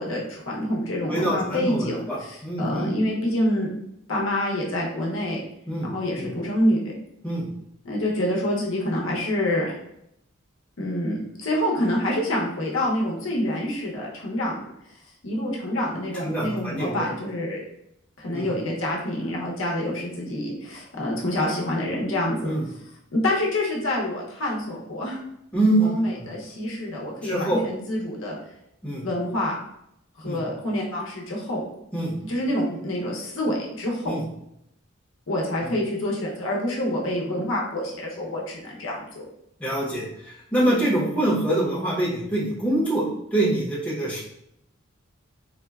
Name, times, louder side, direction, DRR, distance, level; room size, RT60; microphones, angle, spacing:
voice 1, 0.0-3.7 4.1-5.4 5.8-6.8 7.8-9.7 10.8-14.6 15.2-17.6 18.2-22.5 23.1-25.2 25.8-28.3 29.0-29.6 30.2-31.6 32.2-34.2 35.3-39.2, left 1 dB, 70° left, -2 dB, 0.7 m, -27 dB
voice 2, 1.1-2.9 5.7-5.9 6.2-6.3 7.2-7.5 16.2-17.1 18.3-18.5 22.4-22.6 25.5-26.2 27.2-27.6 28.8-29.1 30.2-30.4 31.9-32.2 34.1-34.2 39.6-40.0 40.5-43.0 43.3-44.2, right 1 dB, 5° left, -7 dB, 0.7 m, -25 dB
3.9 x 2.1 x 2.3 m, 0.78 s
head